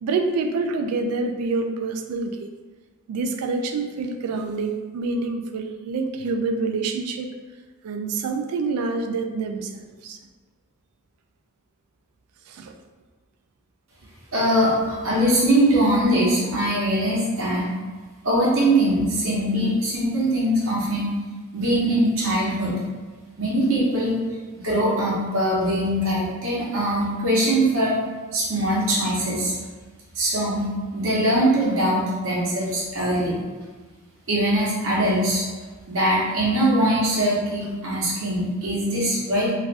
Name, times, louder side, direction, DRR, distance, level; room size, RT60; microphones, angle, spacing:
voice 1, 0.0-2.4 3.1-7.3 7.8-10.2 12.5-12.7, right 3 dB, 90° right, 5 dB, 0.3 m, -27 dB
voice 2, 14.3-17.7 18.2-21.1 21.5-22.7 23.4-24.2 24.5-28.0 28.3-29.5 30.1-30.6 30.9-33.3 34.3-35.4 35.9-39.5, right 1 dB, 65° right, -6 dB, 0.9 m, -22 dB
3.3 x 2.3 x 2.5 m, 1.4 s
head